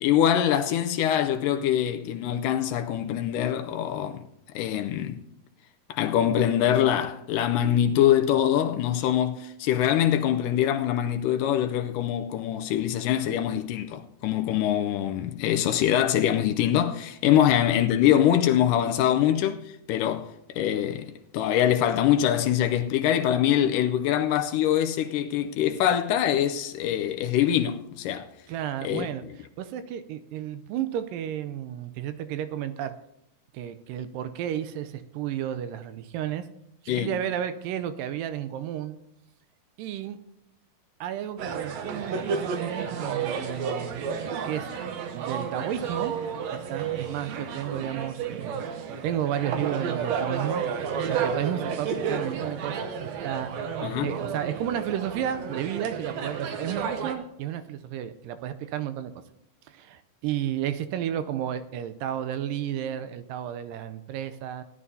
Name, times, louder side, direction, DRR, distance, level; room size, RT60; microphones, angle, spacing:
voice 1, 0.0-4.2 4.6-5.2 5.9-19.6 19.9-28.3 28.8-29.1 36.9-37.1 53.8-54.1, left 10 dB, 80° left, 2.1 m, -24 dB
voice 2, 28.5-29.2 29.6-32.9 33.5-36.5 36.8-39.0 39.8-40.2 41.0-44.7 45.1-46.2 46.5-50.7 51.1-53.6 54.0-59.1 59.7-64.6, right 10 dB, 85° right, 2.3 m, -32 dB
sound 1, 41.4-57.1, right 6 dB, 65° right, 1.9 m, -31 dB
18.0 x 11.0 x 2.8 m
omnidirectional pair, 3.9 m